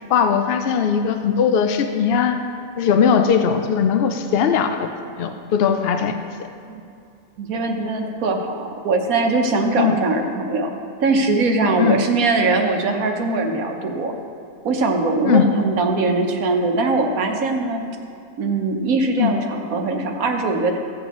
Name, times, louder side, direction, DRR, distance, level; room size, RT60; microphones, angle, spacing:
voice 1, 0.1-2.4 2.8-4.9 5.2-6.2 9.8-10.0 11.8-12.0 15.2-15.5 19.2-19.3, left 7 dB, 65° left, 6 dB, 0.6 m, -19 dB
voice 2, 7.4-10.7 11.0-14.1 14.6-17.8 18.4-20.8, right 3 dB, 75° right, 3 dB, 1.4 m, -21 dB
15.5 x 8.6 x 3.0 m, 2.6 s
omnidirectional pair, 1.5 m